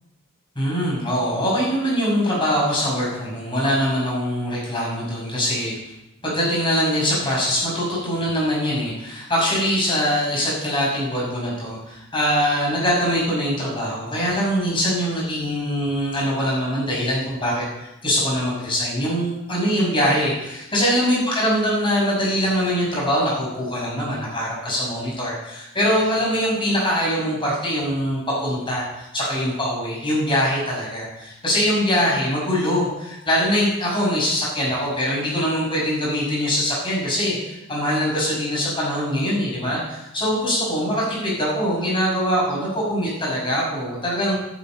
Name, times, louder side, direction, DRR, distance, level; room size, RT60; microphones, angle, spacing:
voice 1, 0.5-5.7 6.2-44.4, equal, 25° left, -4 dB, 6.3 m, -23 dB
11.0 x 8.5 x 9.0 m, 0.93 s
head